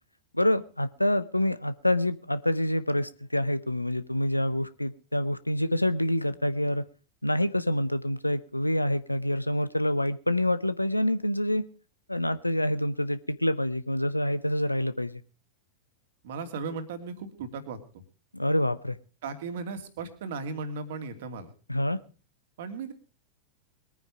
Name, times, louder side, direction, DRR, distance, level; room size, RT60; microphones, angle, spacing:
voice 1, 0.3-6.8 7.2-11.7 12.1-15.2 18.3-19.0 21.7-22.0, left 1 dB, 85° left, 15 dB, 0.8 m, -27 dB
voice 2, 16.2-17.8 19.2-21.5 22.6-22.9, right 4 dB, 55° right, 8 dB, 2.6 m, -36 dB
21.5 x 9.5 x 4.8 m, 0.36 s
figure-of-eight pair, 90°, 0 cm